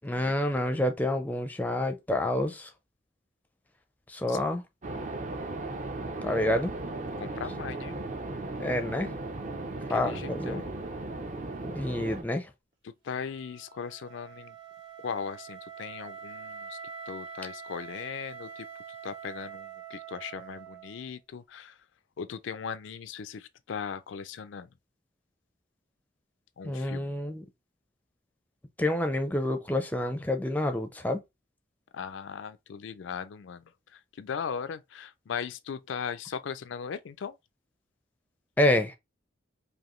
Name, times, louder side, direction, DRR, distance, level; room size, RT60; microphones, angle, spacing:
voice 1, 0.0-2.7 4.1-4.6 6.2-6.7 8.6-9.1 9.9-10.6 11.7-12.5 26.6-27.4 28.8-31.2 38.6-39.0, left 1 dB, 10° left, 0.5 m, -28 dB
sound 1, 4.8-12.2, right 2 dB, 40° right, 0.6 m, -36 dB
voice 2, 6.3-6.6 7.2-8.0 9.9-10.7 12.8-14.6 15.0-16.8 17.1-18.7 19.0-21.8 22.2-24.7 26.6-27.2 31.9-37.4, left 6 dB, 80° left, 0.4 m, -38 dB
Wind instrument woodwind instrument, 13.1-21.1, right 6 dB, 65° right, 1.4 m, -45 dB
4.9 x 2.6 x 3.0 m
head